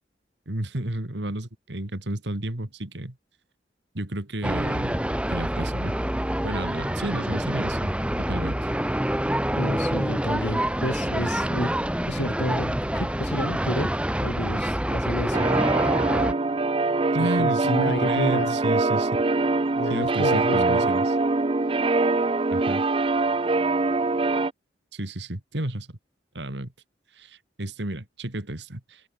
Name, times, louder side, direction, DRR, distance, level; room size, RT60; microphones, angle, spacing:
voice 1, 0.5-3.2 3.9-5.9 6.4-7.9 8.3-8.6 17.1-19.2 19.9-21.1 22.5-22.8 24.9-26.0 26.3-26.7 27.2-29.0, right 1 dB, 75° right, 2.5 m, -31 dB
sound 1, 4.4-16.3, right 1 dB, 5° right, 1.3 m, -26 dB
voice 2, 9.6-11.7 12.1-13.9 14.2-15.5 17.2-18.6 19.7-20.9, left 1 dB, 85° left, 6.5 m, -30 dB
sound 2, 15.3-24.5, right 3 dB, 30° right, 0.6 m, -23 dB
head